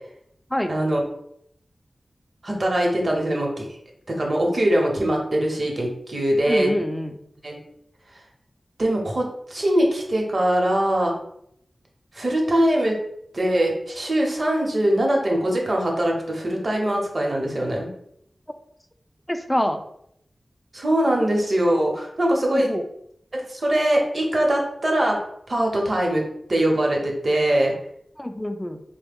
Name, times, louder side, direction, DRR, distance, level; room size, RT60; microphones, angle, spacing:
voice 1, 0.7-1.0 2.4-3.6 4.2-6.7 7.4-7.6 8.8-11.1 12.1-13.0 13.3-17.9 20.7-22.7 23.3-25.2 25.5-26.2 26.5-27.7, right 1 dB, 55° right, 0 dB, 0.9 m, -22 dB
voice 2, 6.5-7.1 19.3-19.8 22.2-22.9 28.2-28.8, left 1 dB, 10° left, 7 dB, 0.4 m, -26 dB
3.2 x 2.2 x 3.5 m, 0.72 s
cardioid pair, 40°, 0 cm